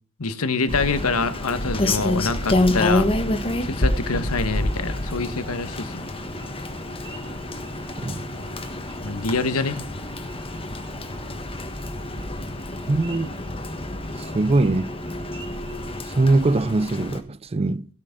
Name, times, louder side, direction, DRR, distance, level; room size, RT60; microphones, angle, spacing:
voice 1, 0.2-3.1 3.6-6.1 9.0-9.8, left 4 dB, 75° left, 1.2 m, -25 dB
Rain, 0.7-17.2, left 1 dB, 25° left, 1.5 m, -28 dB
sound 1, 3.2-17.1, right 3 dB, 60° right, 6.2 m, -51 dB
sound 2, 4.0-11.4, equal, ahead, 2.7 m, -47 dB
voice 2, 12.9-13.3 14.2-14.9 16.0-17.9, right 2 dB, 25° right, 0.4 m, -22 dB
17.0 x 6.1 x 5.9 m
head